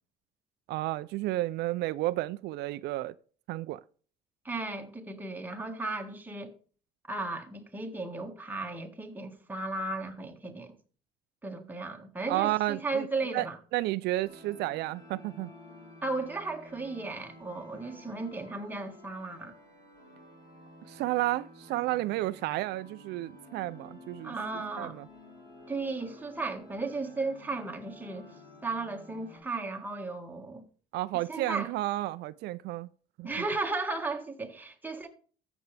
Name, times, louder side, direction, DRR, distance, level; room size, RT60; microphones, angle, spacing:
voice 1, 0.7-3.1 3.5-3.8 12.3-13.5 13.7-15.5 20.9-24.4 24.8-25.0 30.9-32.9 33.2-33.3, right 17 dB, 80° right, 0.4 m, -31 dB
voice 2, 4.4-6.5 7.1-10.7 11.4-13.6 16.0-19.6 24.2-25.0 25.7-28.3 28.6-30.6 31.1-31.7 33.2-35.1, right 3 dB, 10° right, 1.7 m, -35 dB
sound 1, 14.2-29.4, left 2 dB, 25° left, 5.1 m, -52 dB
13.5 x 7.1 x 3.4 m
cardioid pair, 110°, 17 cm